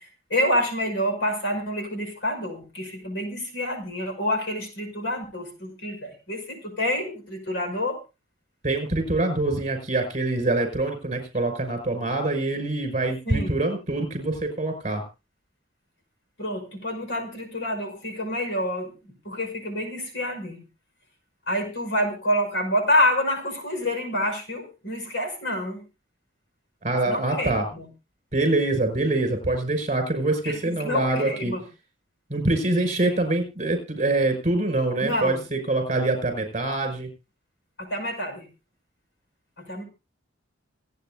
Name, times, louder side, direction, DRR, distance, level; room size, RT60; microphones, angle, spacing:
voice 1, 0.0-8.0 13.2-13.6 16.4-18.9 19.2-20.6 21.5-25.8 27.1-27.9 30.4-31.6 33.0-33.2 35.0-35.4 37.8-38.5 39.6-39.8, left 1 dB, 65° left, 5 dB, 5.7 m, -28 dB
voice 2, 8.6-15.0 26.8-27.6 28.3-31.5 32.3-37.1, right 2 dB, 35° right, 7 dB, 5.7 m, -25 dB
27.0 x 9.3 x 2.5 m, 0.29 s
head